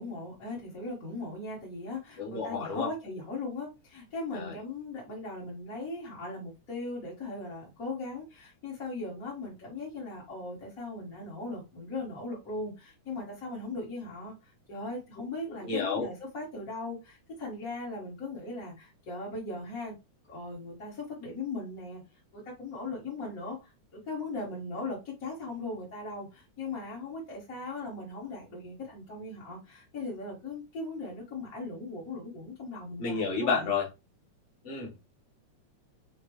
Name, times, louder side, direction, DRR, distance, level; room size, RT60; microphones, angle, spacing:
voice 1, 0.0-19.9 20.3-22.0 22.3-33.7, left 2 dB, 40° left, 1.5 m, -39 dB
voice 2, 2.2-2.9 4.3-4.6 15.6-16.1 33.0-33.8 34.6-35.0, left 5 dB, 60° left, 0.7 m, -30 dB
6.6 x 2.4 x 3.1 m
omnidirectional pair, 3.4 m